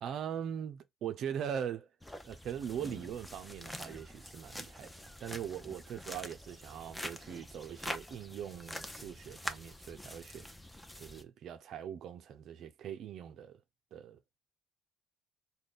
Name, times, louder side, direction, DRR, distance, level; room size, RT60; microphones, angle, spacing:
voice 1, 0.0-1.9 2.2-10.5 11.0-13.6 13.9-14.2, right 9 dB, 65° right, 0.4 m, -41 dB
sound 1, 2.0-11.2, left 1 dB, 10° left, 0.6 m, -45 dB
3.3 x 2.1 x 4.0 m
hypercardioid pair, 55°, 0 cm